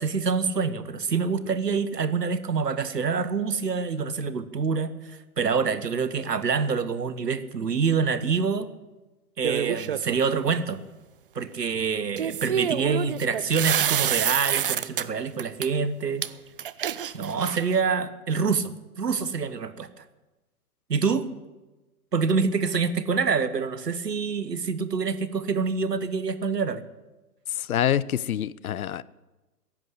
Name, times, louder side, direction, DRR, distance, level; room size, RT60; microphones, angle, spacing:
voice 1, 0.0-8.7 9.4-10.8 11.3-16.3 17.1-19.9 20.9-21.3 22.1-26.8, right 5 dB, 85° right, 13 dB, 1.4 m, -26 dB
sound 1, 9.4-10.2 12.2-15.0 15.4-15.7 16.2-16.3 16.6-17.8, right 9 dB, 35° right, 0.5 m, -27 dB
voice 2, 27.7-29.0, left 10 dB, 65° left, 21 dB, 0.7 m, -26 dB
15.0 x 11.0 x 8.0 m, 1.1 s
hypercardioid pair, 135°, 47 cm